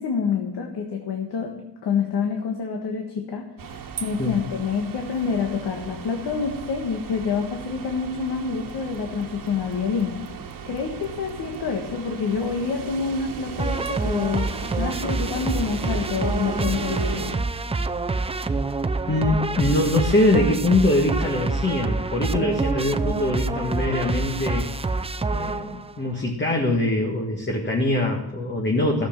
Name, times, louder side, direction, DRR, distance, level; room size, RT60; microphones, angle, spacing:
voice 1, 0.0-1.5 1.8-10.2 10.7-14.5 14.8-17.4, left 5 dB, 85° left, 2 dB, 1.6 m, -27 dB
sound 1, 3.6-17.4, right 6 dB, 55° right, 1.4 m, -36 dB
sound 2, 13.6-26.0, right 3 dB, 15° right, 0.5 m, -27 dB
voice 2, 19.1-24.7 25.3-29.1, left 2 dB, 30° left, 1 dB, 1.7 m, -23 dB
13.0 x 7.6 x 7.4 m, 1.0 s
cardioid pair, 110°, 39 cm